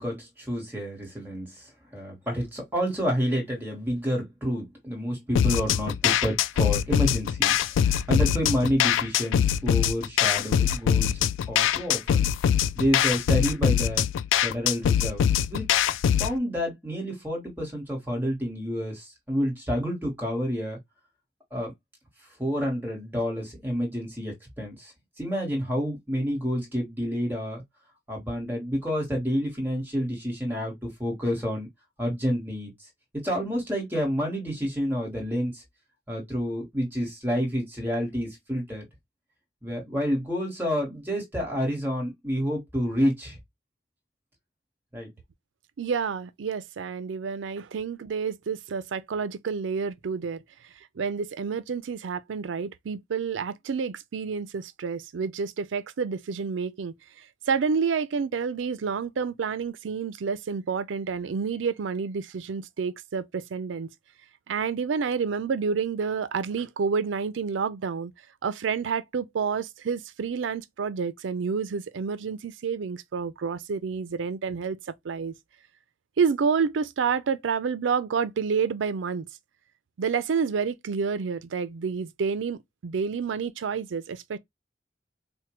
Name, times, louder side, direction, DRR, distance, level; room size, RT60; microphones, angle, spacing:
voice 1, 0.0-11.2 11.5-12.3 12.7-14.0 14.4-15.9 16.2-20.8 21.5-21.7 22.4-27.6 28.1-31.7 32.0-32.7 33.1-35.6 36.1-38.9 39.6-43.4 44.9-45.1, equal, 10° right, 1.2 m, -29 dB
sound 1, 5.4-16.4, left 9 dB, 85° left, 0.3 m, -23 dB
voice 2, 45.8-50.4 51.0-56.9 57.5-63.9 64.5-68.1 68.4-74.8 75.0-75.3 76.2-79.3 80.0-84.4, right 5 dB, 80° right, 0.4 m, -29 dB
4.4 x 2.2 x 2.9 m
head